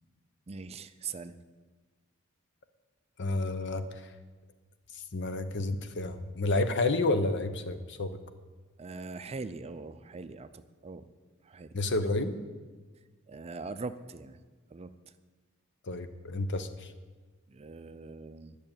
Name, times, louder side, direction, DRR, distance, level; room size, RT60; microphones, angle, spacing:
voice 1, 0.5-1.4 8.8-11.0 11.4-11.7 13.3-14.4 14.7-14.9 17.5-18.6, right 4 dB, 30° right, 11 dB, 0.4 m, -41 dB
voice 2, 3.2-4.1 5.1-8.2 11.7-12.3 15.9-16.9, left 2 dB, 55° left, 10 dB, 0.9 m, -30 dB
11.0 x 6.6 x 8.9 m, 1.4 s
head